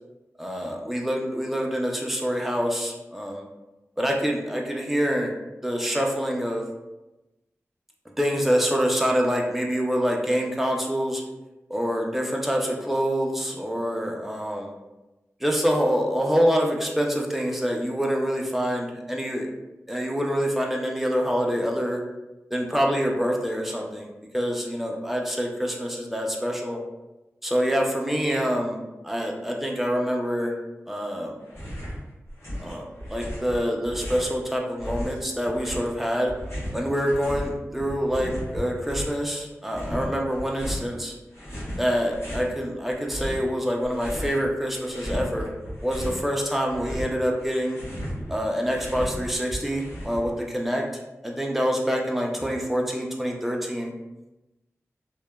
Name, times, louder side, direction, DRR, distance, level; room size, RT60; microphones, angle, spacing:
voice 1, 0.4-3.5 4.0-5.3 5.6-6.6 8.2-11.2 11.7-14.7 15.4-19.5 19.9-22.0 22.5-26.8 27.4-28.8 29.0-30.5 30.9-31.4 32.6-36.3 36.7-41.1 41.8-45.5 45.8-47.8 48.3-50.8 51.2-53.9, equal, 5° right, 0 dB, 0.4 m, -26 dB
sound 1, 31.5-32.0 32.3-34.4 34.8-37.5 37.8-39.2 39.7-40.9 41.3-42.5 42.9-44.4 44.7-46.2 46.5-50.4, equal, 65° left, 0.9 m, -35 dB
2.8 x 2.1 x 2.2 m, 1.0 s
wide cardioid pair, 75°, 5 cm